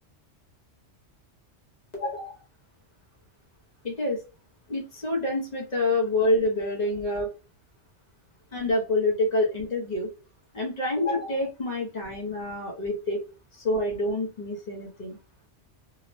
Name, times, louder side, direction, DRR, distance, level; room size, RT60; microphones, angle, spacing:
voice 1, 1.9-2.3 3.8-4.2 4.7-7.3 8.5-10.1 10.5-13.2 13.5-15.2, left 1 dB, 40° left, -1 dB, 0.8 m, -27 dB
3.0 x 2.1 x 2.5 m, 0.31 s
omnidirectional pair, 1.2 m